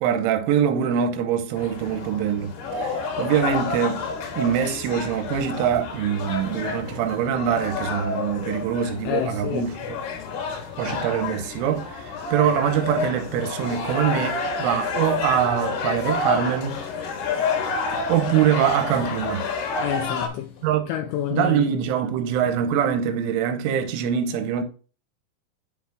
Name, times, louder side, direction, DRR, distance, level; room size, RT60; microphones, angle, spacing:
voice 1, 0.0-2.5 2.8-4.1 4.4-10.0 10.8-16.8 18.1-19.5 20.6-20.9 21.3-24.6, right 9 dB, 85° right, 3.1 m, -24 dB
sound 1, 1.6-20.3, left 4 dB, 65° left, 3.1 m, -29 dB
voice 2, 9.1-9.6 19.8-20.6 20.9-21.8, left 11 dB, 85° left, 2.5 m, -28 dB
8.9 x 6.3 x 2.3 m
omnidirectional pair, 5.7 m